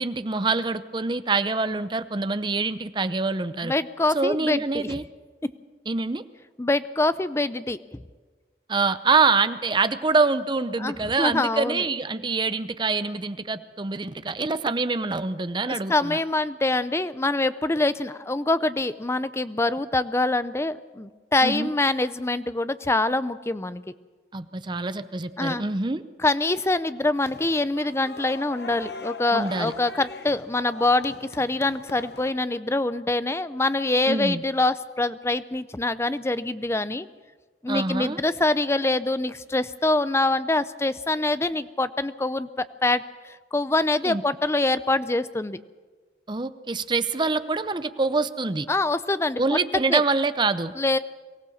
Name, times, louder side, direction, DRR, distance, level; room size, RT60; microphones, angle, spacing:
voice 1, 0.0-3.7 4.1-5.0 5.9-6.2 8.7-16.2 21.4-21.7 24.3-26.0 29.3-29.7 34.0-34.4 37.7-38.2 44.0-44.2 46.3-48.7 49.4-50.7, right 3 dB, 25° right, 13 dB, 0.6 m, -25 dB
voice 2, 3.6-5.0 6.6-7.8 10.8-11.8 15.7-23.8 25.4-25.6 26.2-37.1 37.6-45.6 48.7-49.6 49.9-50.0 50.8-51.0, left 2 dB, 15° left, 14 dB, 0.5 m, -25 dB
sound 1, 27.2-32.3, left 3 dB, 65° left, 1.1 m, -41 dB
23.0 x 16.0 x 7.2 m, 1.4 s
head